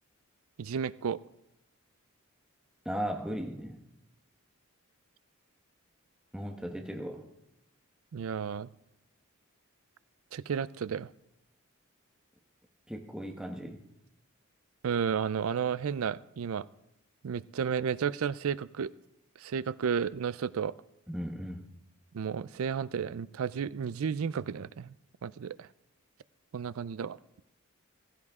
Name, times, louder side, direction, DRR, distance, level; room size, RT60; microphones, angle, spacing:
voice 1, 0.6-1.2 8.1-8.7 10.3-11.1 14.8-16.7 17.2-18.9 19.4-20.7 22.1-24.9 25.2-25.7 26.5-27.2, right 7 dB, 75° right, 18 dB, 0.4 m, -32 dB
voice 2, 2.8-3.8 6.3-7.2 12.9-13.8 21.1-21.7, equal, 5° right, 1 dB, 1.2 m, -37 dB
16.0 x 15.5 x 3.6 m, 0.86 s
head